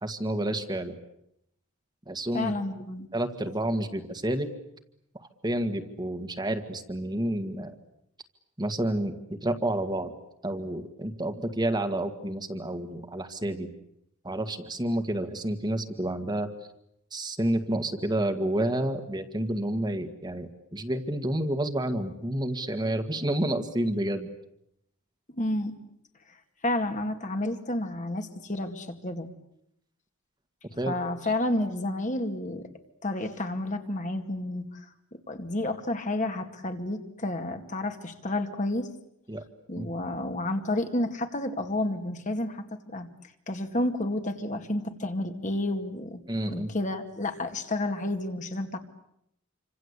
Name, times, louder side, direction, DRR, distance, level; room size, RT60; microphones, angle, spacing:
voice 1, 0.0-0.9 2.1-2.5 3.1-4.5 5.4-7.7 8.6-9.1 9.4-10.1 10.4-13.7 14.2-16.5 17.1-24.3 30.8-30.9 39.3-39.4 39.7-39.9 46.3-46.7, right 1 dB, 20° right, 6 dB, 1.8 m, -29 dB
voice 2, 2.3-3.1 25.4-25.7 26.6-29.3 30.9-32.7 33.0-34.9 35.1-38.9 39.7-43.1 43.5-46.2 46.5-48.8, left 1 dB, 35° left, 6 dB, 2.2 m, -30 dB
28.0 x 26.0 x 8.3 m, 0.77 s
head